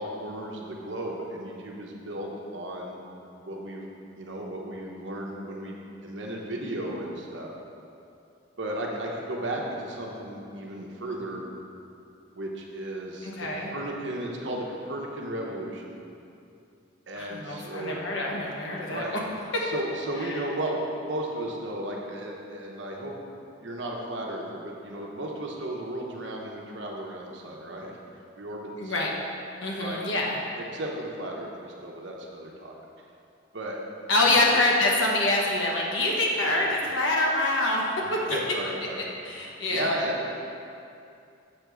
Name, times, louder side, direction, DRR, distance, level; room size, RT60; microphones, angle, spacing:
voice 1, 0.0-3.0 3.4-3.9 4.2-7.5 8.6-11.4 12.3-15.8 17.1-18.0 18.9-19.1 19.6-23.1 23.6-29.1 29.8-30.0 30.6-32.7 33.5-33.8 34.2-34.6 36.4-36.6 38.0-39.0 39.7-40.3, right 1 dB, 65° right, -1 dB, 0.9 m, -34 dB
voice 2, 13.2-13.7 17.2-19.2 19.5-19.6 20.2-20.4 28.8-29.1 29.6-30.4 34.1-37.8 38.3-38.4 39.2-39.9, left 2 dB, 70° left, -2 dB, 1.1 m, -25 dB
7.4 x 3.5 x 6.2 m, 2.6 s
head